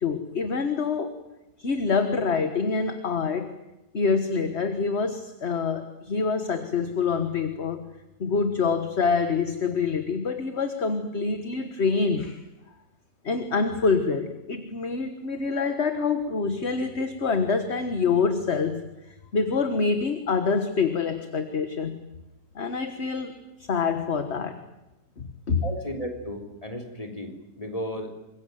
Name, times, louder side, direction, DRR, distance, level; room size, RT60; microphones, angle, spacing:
voice 1, 0.0-1.1 1.6-3.5 3.9-7.9 8.2-12.4 13.2-18.8 19.3-22.0 22.6-23.4 23.7-24.6 25.2-25.6, left 5 dB, 40° left, 8 dB, 1.6 m, -26 dB
voice 2, 25.6-28.1, equal, 20° left, 3 dB, 3.8 m, -34 dB
25.5 x 22.0 x 9.3 m, 0.98 s
omnidirectional pair, 1.9 m